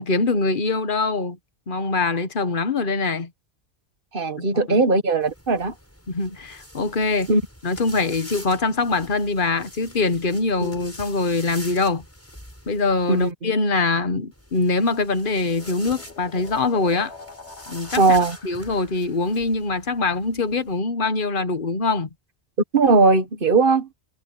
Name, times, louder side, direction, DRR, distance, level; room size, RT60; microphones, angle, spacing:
voice 1, 0.0-1.4 1.7-3.3 4.4-4.8 6.1-7.3 7.6-12.0 12.7-17.1 17.7-18.2 18.4-22.1, left 3 dB, 50° left, 1.4 m, -23 dB
voice 2, 4.1-5.7 7.3-7.4 10.6-10.7 13.1-13.5 18.0-18.4 22.7-23.9, right 3 dB, 55° right, 1.6 m, -19 dB
sound 1, 5.2-13.3 14.3-20.8, equal, 15° left, 7.5 m, -44 dB
sound 2, 15.0-19.4, left 3 dB, 85° left, 3.5 m, -45 dB
omnidirectional pair, 1.1 m